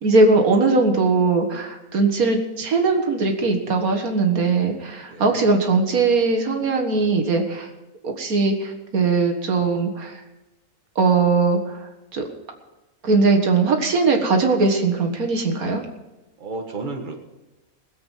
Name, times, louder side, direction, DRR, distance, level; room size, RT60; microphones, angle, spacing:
voice 1, 0.0-7.7 8.0-10.2 11.0-11.8 12.1-12.2 13.0-15.8, right 3 dB, 75° right, 4 dB, 2.0 m, -20 dB
voice 2, 5.0-5.5 16.4-17.2, right 3 dB, 35° right, 2 dB, 1.6 m, -32 dB
20.5 x 7.9 x 5.5 m, 1.1 s
omnidirectional pair, 1.5 m